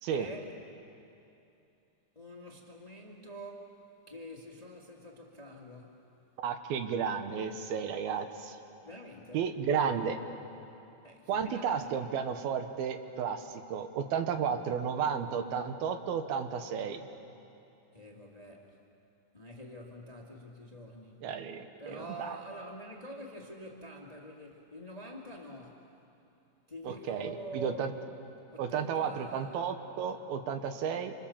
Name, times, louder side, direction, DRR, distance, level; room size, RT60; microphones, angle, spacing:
voice 1, 0.1-0.5 2.1-3.7 4.1-6.0 8.8-9.5 11.0-11.7 17.9-18.8 19.3-21.3 21.8-25.9 26.7-27.9 28.5-29.6, equal, 15° left, -1 dB, 1.5 m, -46 dB
voice 2, 6.4-8.6 9.3-10.2 11.3-17.0 21.2-22.3 26.8-27.9 28.6-31.1, right 7 dB, 85° right, 7 dB, 3.1 m, -33 dB
28.0 x 26.5 x 7.2 m, 2.8 s
omnidirectional pair, 4.2 m